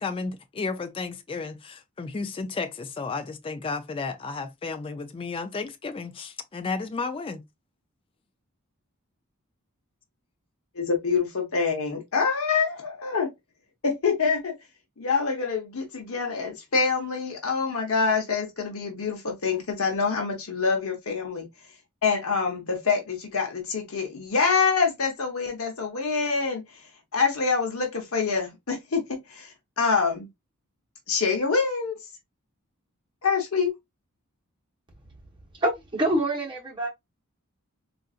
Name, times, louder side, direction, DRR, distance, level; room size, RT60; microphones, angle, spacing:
voice 1, 0.0-7.4, left 4 dB, 25° left, 0.3 m, -33 dB
voice 2, 10.7-13.3 13.8-14.5 15.0-21.5 22.0-30.3 31.1-32.0 33.2-33.7, left 5 dB, 65° left, 0.8 m, -26 dB
voice 3, 35.5-36.9, right 1 dB, 20° right, 1.1 m, -26 dB
3.8 x 2.5 x 2.4 m
head